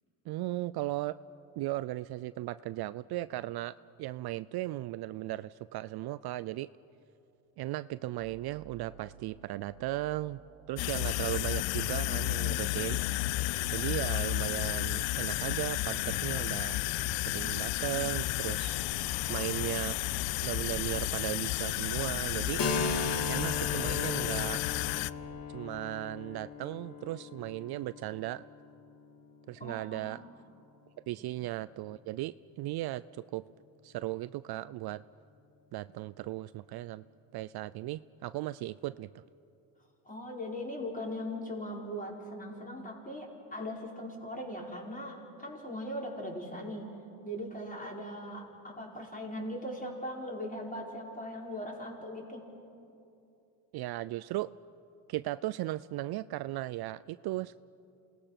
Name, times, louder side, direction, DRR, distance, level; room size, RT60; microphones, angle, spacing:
voice 1, 0.3-1.2 1.6-6.7 7.6-10.4 10.7-13.0 13.7-16.8 17.3-18.8 19.3-20.0 20.4-22.6 23.3-24.6 25.5-28.5 29.5-30.2 31.1-33.4 33.8-35.0 35.7-37.0 37.3-39.2 53.7-54.5 55.1-57.6, right 16 dB, 60° right, 16 dB, 0.5 m, -36 dB
sound 1, 8.1-25.4, right 6 dB, 80° right, 1.7 m, -49 dB
sound 2, 10.8-25.1, left 19 dB, 85° left, 0.5 m, -32 dB
Keyboard (musical), 22.6-30.0, left 4 dB, 50° left, 2.0 m, -37 dB
voice 2, 29.6-30.2 31.2-31.3 40.1-46.9 47.2-52.5, equal, 20° left, -2 dB, 5.2 m, -39 dB
27.5 x 19.0 x 5.9 m, 2.6 s
supercardioid pair, 90°, 44 cm